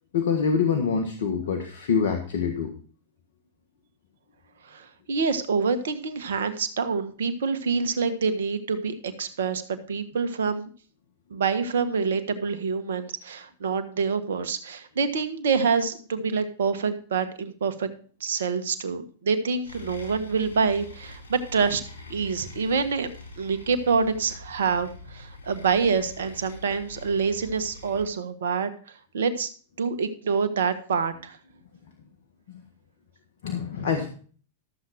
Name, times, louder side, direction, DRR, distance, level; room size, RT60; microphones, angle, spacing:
voice 1, 0.1-2.7 32.5-32.6 33.4-34.1, left 6 dB, 70° left, 5 dB, 1.6 m, -25 dB
voice 2, 4.7-10.7 11.3-17.9 18.2-21.8 22.1-23.1 23.4-28.7 29.1-29.5 29.8-31.4, right 5 dB, 75° right, 10 dB, 1.5 m, -26 dB
sound 1, 19.6-28.0, left 3 dB, 85° left, 5.0 m, -44 dB
13.5 x 7.7 x 4.3 m, 0.41 s
hypercardioid pair, 100°, 0 cm